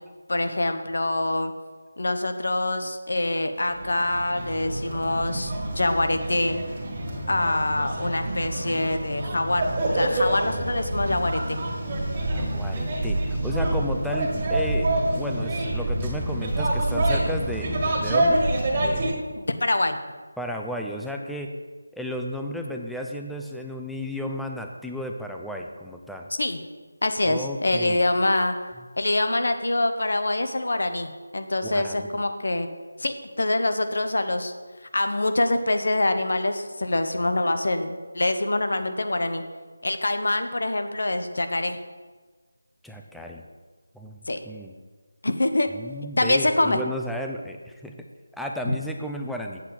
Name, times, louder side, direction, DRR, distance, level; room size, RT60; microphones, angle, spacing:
voice 1, 0.3-1.5 2.0-6.6 7.3-11.6 19.4-20.0 26.4-26.6 27.0-28.5 29.0-32.7 33.0-34.5 34.9-39.4 39.8-41.8 44.3-44.4 45.2-45.7 46.2-46.8 48.7-48.8, left 2 dB, 70° left, 8 dB, 1.0 m, -25 dB
sound 1, 3.7-19.1, right 1 dB, 30° right, 1.6 m, -27 dB
voice 2, 12.3-14.9 15.1-18.4 18.8-19.3 20.4-21.5 21.9-26.3 27.2-28.0 31.6-32.1 42.8-43.4 43.9-44.2 44.4-44.7 45.7-47.9 48.3-49.6, left 1 dB, ahead, 1 dB, 0.4 m, -33 dB
8.2 x 8.0 x 4.4 m, 1.4 s
figure-of-eight pair, 170°, 0 cm